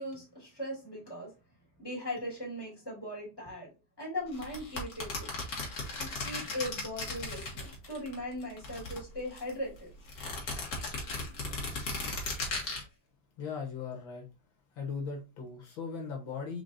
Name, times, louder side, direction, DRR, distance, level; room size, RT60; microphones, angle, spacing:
voice 1, 0.0-1.3 1.8-3.7 4.0-5.3 6.0-9.9, left 1 dB, 10° left, 2.7 m, -39 dB
sound 1, 4.3-8.1 8.4-9.5 10.1-12.8, left 3 dB, 55° left, 1.9 m, -36 dB
voice 2, 13.4-14.3 14.8-16.6, left 5 dB, 75° left, 2.0 m, -38 dB
5.0 x 3.9 x 2.6 m
omnidirectional pair, 2.1 m